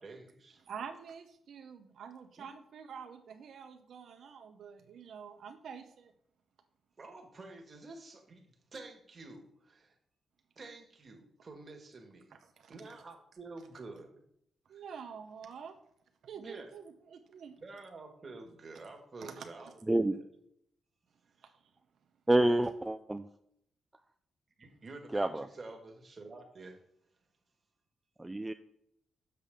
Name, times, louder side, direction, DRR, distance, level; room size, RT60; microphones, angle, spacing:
voice 1, 0.0-0.6 2.4-2.5 7.0-10.0 10.6-12.3 12.7-14.2 14.7-14.8 16.3-16.7 17.6-20.2 24.6-26.8, right 3 dB, 35° right, 3 dB, 1.7 m, -49 dB
voice 2, 0.7-6.1 12.3-12.7 14.7-15.8 16.2-17.6 19.2-19.7 21.4-21.7, right 7 dB, 70° right, 6 dB, 0.7 m, -47 dB
voice 3, 19.9-20.2 22.3-23.3 25.1-25.5 28.2-28.5, right 1 dB, 15° right, 8 dB, 0.3 m, -28 dB
6.7 x 6.6 x 3.6 m, 0.72 s
cardioid pair, 105°, 0 cm